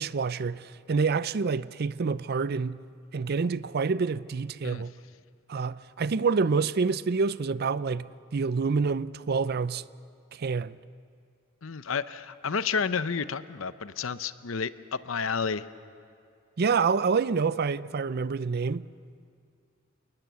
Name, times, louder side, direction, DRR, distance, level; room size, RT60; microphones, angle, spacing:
voice 1, 0.0-2.8 3.1-4.9 5.5-9.8 10.3-10.8 16.6-18.8, right 5 dB, 50° right, 0.5 m, -27 dB
voice 2, 11.6-15.6, left 5 dB, 80° left, 0.7 m, -31 dB
29.0 x 19.5 x 7.0 m
head